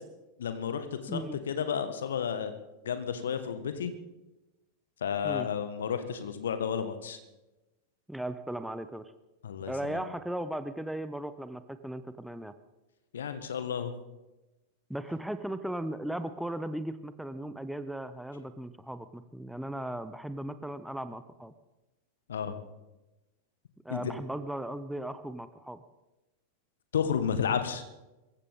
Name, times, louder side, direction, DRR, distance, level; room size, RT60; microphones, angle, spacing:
voice 1, 0.4-1.2 1.5-2.5 2.8-3.9 5.0-7.2 9.4-10.0 13.1-13.9 22.3-22.6 23.9-24.1 26.9-27.8, left 7 dB, 65° left, 9 dB, 1.6 m, -32 dB
voice 2, 1.1-1.4 5.2-5.5 8.1-9.0 9.7-12.5 14.9-21.5 23.8-25.8, right 1 dB, ahead, 11 dB, 0.8 m, -37 dB
25.0 x 15.0 x 3.7 m, 1.0 s
figure-of-eight pair, 90°, 0 cm